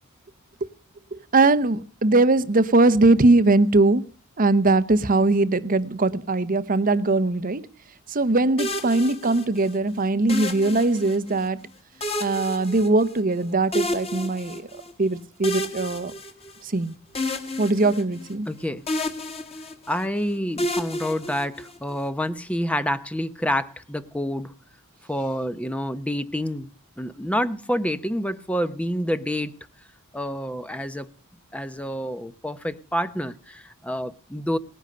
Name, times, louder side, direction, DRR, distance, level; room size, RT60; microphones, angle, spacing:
voice 1, 1.1-4.0 4.4-7.6 8.1-11.6 12.2-14.6 15.0-16.1 16.7-16.9 17.6-18.5, right 2 dB, 40° right, 0.8 m, -20 dB
sound 1, 8.6-9.8 10.3-11.4 12.0-13.4 13.7-14.9 15.4-16.8 17.2-18.6 18.9-20.1 20.6-21.9, left 1 dB, 25° left, 2.0 m, -31 dB
voice 2, 18.5-18.8 19.9-24.5 25.1-26.7 27.0-29.5 30.1-31.1 31.5-34.6, equal, 5° left, 0.8 m, -28 dB
19.0 x 10.0 x 6.7 m
head